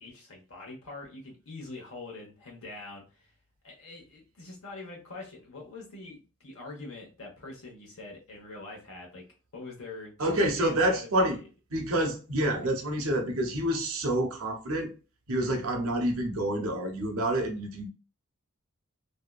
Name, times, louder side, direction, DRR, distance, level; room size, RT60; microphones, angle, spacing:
voice 1, 0.0-3.3 3.6-9.2 9.5-11.4 12.4-12.5, left 2 dB, 70° left, 0.9 m, -44 dB
voice 2, 10.2-11.4 11.7-14.9 15.3-17.9, right 1 dB, 70° right, 0.7 m, -28 dB
2.7 x 2.2 x 2.2 m
head